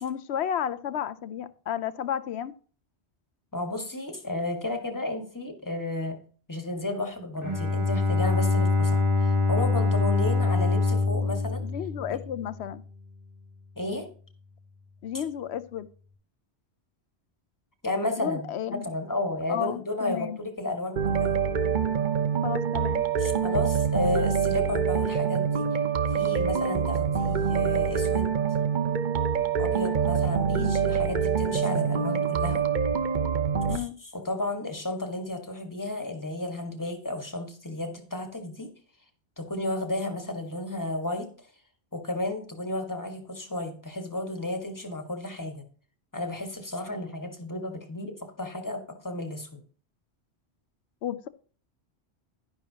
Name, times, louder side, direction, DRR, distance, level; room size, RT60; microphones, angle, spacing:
voice 1, 0.0-2.5 11.6-12.8 15.0-15.9 18.2-18.9 19.5-20.4 22.4-23.0 30.5-30.8 33.7-34.0 51.0-51.3, left 9 dB, 75° left, 15 dB, 0.9 m, -32 dB
voice 2, 3.5-6.2 6.5-11.6 13.8-14.1 15.1-15.2 17.8-21.4 23.2-25.7 26.1-28.3 29.6-32.6 33.7-38.7 39.4-41.3 41.9-45.6 46.1-49.6, left 2 dB, 15° left, 5 dB, 1.6 m, -33 dB
Bowed string instrument, 7.4-12.6, left 3 dB, 30° right, 1.8 m, -24 dB
sound 1, 21.0-33.8, right 7 dB, 50° right, 0.9 m, -25 dB
11.0 x 10.5 x 2.9 m, 0.42 s
omnidirectional pair, 1.1 m